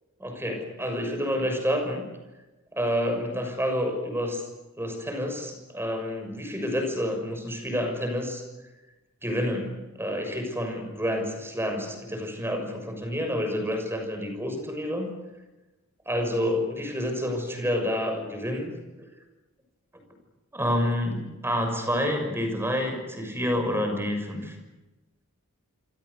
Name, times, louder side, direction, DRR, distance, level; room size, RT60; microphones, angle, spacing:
voice 1, 0.2-2.0 2.7-4.4 4.8-8.4 9.2-15.1 16.1-18.7 19.0-19.1 20.5-24.5, equal, 10° right, 5 dB, 6.5 m, -28 dB
27.5 x 26.5 x 6.7 m, 1.1 s
head